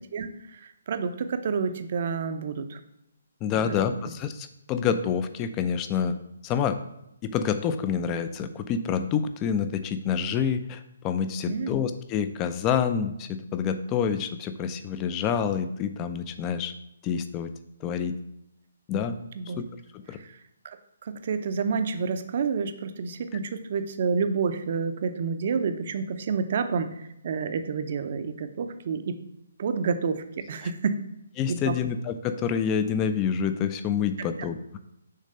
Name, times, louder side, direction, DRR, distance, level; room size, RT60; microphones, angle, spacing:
voice 1, 0.1-2.8 3.5-3.8 11.4-11.8 18.9-19.1 19.4-19.6 20.1-20.4 20.6-20.8 21.0-29.2 29.6-31.0 31.5-31.7, right 5 dB, 50° right, 9 dB, 0.6 m, -29 dB
voice 2, 3.4-6.1 6.4-6.8 7.2-16.7 17.0-17.5 17.8-18.1 18.9-19.2 19.6-19.7 19.9-20.2 31.4-34.8, left 7 dB, 25° left, 10 dB, 0.5 m, -27 dB
6.5 x 3.2 x 5.4 m, 0.82 s
figure-of-eight pair, 140°, 0 cm